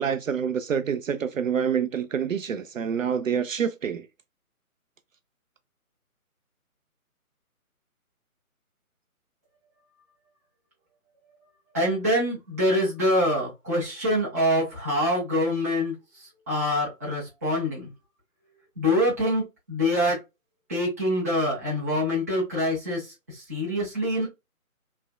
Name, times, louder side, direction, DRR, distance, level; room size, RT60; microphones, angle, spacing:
voice 1, 0.0-4.1, right 7 dB, 60° right, 0.5 m, -27 dB
voice 2, 11.7-15.9 16.5-17.9 18.8-20.2 20.7-24.3, equal, 10° right, 0.6 m, -25 dB
3.3 x 2.3 x 2.2 m
figure-of-eight pair, 145°, 44 cm